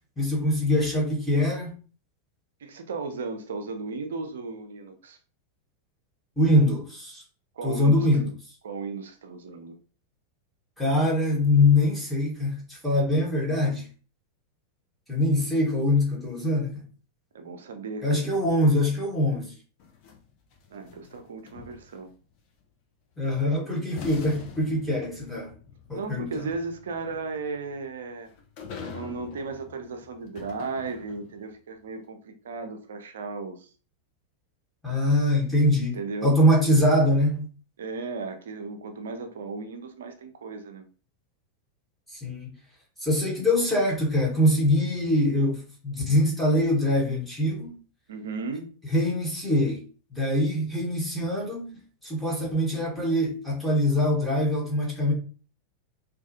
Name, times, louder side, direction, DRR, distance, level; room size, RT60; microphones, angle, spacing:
voice 1, 0.2-1.7 6.4-7.2 7.6-8.2 10.8-13.9 15.1-16.8 18.0-19.5 23.2-25.5 25.9-26.3 34.8-37.4 42.1-42.5 43.0-47.8 48.9-49.8 50.1-51.7 52.0-55.1, left 1 dB, 5° left, 1.0 m, -23 dB
voice 2, 2.6-5.2 7.6-8.3 8.6-9.7 17.3-18.3 20.7-22.1 23.4-23.7 25.9-28.3 28.9-33.7 35.9-36.4 37.8-40.9 48.1-48.7, right 4 dB, 60° right, 0.4 m, -35 dB
sound 1, 19.8-22.2 23.4-23.5 24.0-31.4, left 5 dB, 45° left, 0.5 m, -45 dB
2.4 x 2.3 x 2.6 m
figure-of-eight pair, 90°, 0 cm